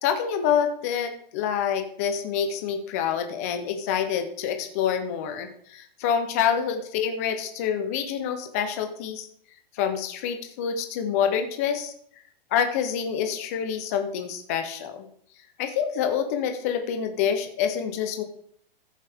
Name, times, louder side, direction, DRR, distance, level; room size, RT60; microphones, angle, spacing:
voice 1, 0.0-9.3 9.8-11.9 12.5-15.1 15.6-18.2, left 8 dB, 15° left, 7 dB, 0.5 m, -27 dB
14.0 x 7.3 x 3.4 m, 0.63 s
hypercardioid pair, 175°, 29 cm